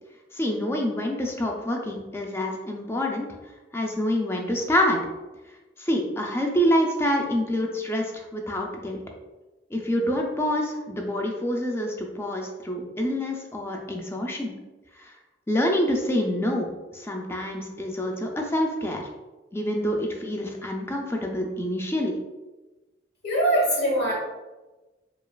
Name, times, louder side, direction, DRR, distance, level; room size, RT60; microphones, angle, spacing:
voice 1, 0.3-3.3 3.7-5.0 5.8-9.0 9.7-14.5 15.0-15.1 15.5-19.0 19.5-22.2, equal, 15° left, 1 dB, 0.4 m, -26 dB
voice 2, 23.2-24.1, right 1 dB, 65° left, -3 dB, 1.4 m, -22 dB
5.0 x 2.4 x 2.3 m, 1.1 s
head